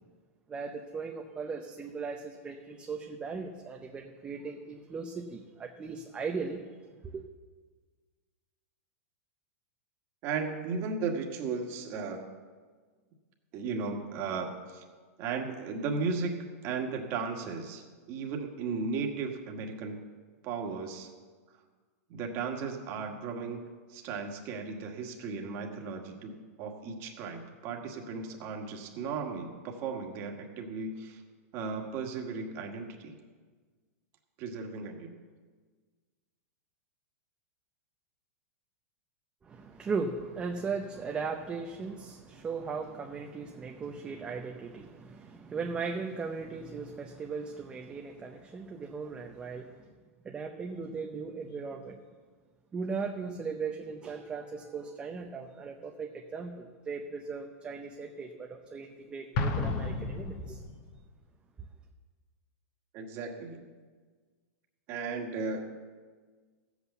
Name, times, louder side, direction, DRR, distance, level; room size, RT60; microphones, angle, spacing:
voice 1, 0.5-6.7 7.0-7.2 39.4-49.8 50.2-52.0 52.7-60.6, right 4 dB, 10° right, 2 dB, 0.7 m, -38 dB
voice 2, 10.2-12.2 13.5-14.8 15.2-20.0 20.4-21.1 22.1-23.6 23.9-31.2 31.5-33.1 34.4-35.1 62.9-63.7 64.9-65.7, right 4 dB, 30° right, 3 dB, 1.6 m, -35 dB
Explosion, 59.4-61.0, left 3 dB, 35° left, 1.1 m, -32 dB
14.5 x 8.4 x 7.0 m, 1.5 s
supercardioid pair, 165°, 8 cm